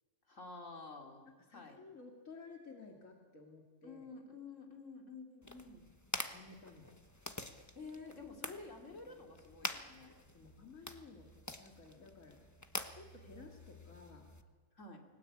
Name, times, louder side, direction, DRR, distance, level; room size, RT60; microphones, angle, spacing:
voice 1, 0.3-1.2 1.5-1.8 3.8-5.9 7.8-10.1 14.8-15.0, left 3 dB, 70° left, 2 dB, 3.7 m, -50 dB
voice 2, 1.5-4.0 6.3-6.9 10.3-11.3 11.6-12.4 12.9-14.3, left 4 dB, 90° left, 1 dB, 3.0 m, -55 dB
sound 1, 5.4-14.4, left 1 dB, 15° left, 1.2 m, -47 dB
29.0 x 20.0 x 8.7 m, 1.4 s
omnidirectional pair, 1.4 m